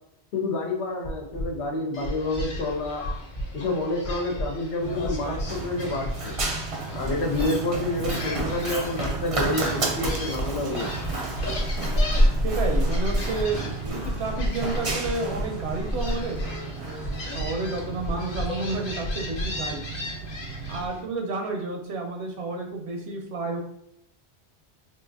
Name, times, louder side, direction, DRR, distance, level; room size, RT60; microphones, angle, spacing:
voice 1, 0.3-3.0 3.5-6.3 6.9-10.9, left 2 dB, 80° left, 1 dB, 1.0 m, -28 dB
sound 1, 1.0-1.5 2.0-2.5 3.0-3.5 4.0-4.5 5.0-5.5 6.0-6.5 7.0-7.4 8.0-8.4 9.0-9.5 10.0-10.5 11.0-11.4 12.0-12.5 13.0-13.5 14.0-14.4 15.0-15.4 16.0-16.5 17.0-17.4 18.0-18.5 19.0-19.5, equal, 40° left, 0.3 m, -31 dB
Gull seagull, 1.9-21.0, left 2 dB, 55° left, 0.9 m, -39 dB
Run, 4.8-20.9, right 1 dB, 40° right, 0.5 m, -29 dB
voice 2, 12.4-16.4 16.8-19.8 20.7-23.6, right 3 dB, 80° right, 2 dB, 0.8 m, -31 dB
3.8 x 2.5 x 2.6 m, 0.75 s
omnidirectional pair, 1.1 m